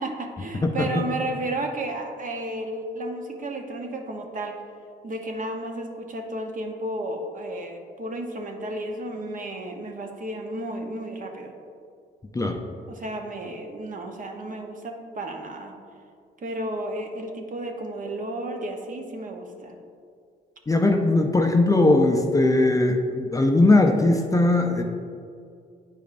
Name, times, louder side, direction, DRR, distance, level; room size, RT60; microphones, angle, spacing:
voice 1, 0.0-4.6 5.0-11.5 12.9-15.7 16.4-19.8, right 1 dB, 40° right, 3 dB, 0.9 m, -33 dB
voice 2, 0.6-1.0 12.3-12.6 20.7-24.8, left 2 dB, 15° left, 3 dB, 0.5 m, -19 dB
9.2 x 5.1 x 2.5 m, 2.3 s
cardioid pair, 90°, 20 cm